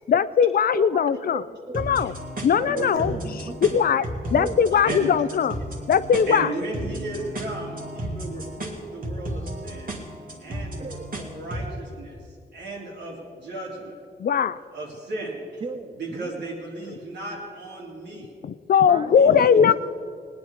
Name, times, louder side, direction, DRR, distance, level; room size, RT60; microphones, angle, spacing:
voice 1, 0.1-1.4 1.7-2.1 2.4-3.1 3.6-4.0 4.3-5.5 5.9-6.5 14.2-14.6 18.4-19.7, left 7 dB, 60° left, 15 dB, 0.5 m, -19 dB
voice 2, 0.7-1.9 2.6-3.8 4.3-4.7 10.8-11.1 15.6-16.4 18.8-19.2, right 4 dB, 30° right, 10 dB, 0.6 m, -36 dB
sound 1, 1.7-11.7, right 1 dB, 55° right, 2.4 m, -34 dB
voice 3, 4.7-5.1 6.3-10.0 10.4-10.8 11.1-12.2 12.5-14.0 14.7-15.6 16.0-18.3 19.0-19.7, right 2 dB, 90° right, -3 dB, 3.2 m, -35 dB
19.5 x 9.7 x 4.9 m, 2.2 s
cardioid pair, 75°, 17 cm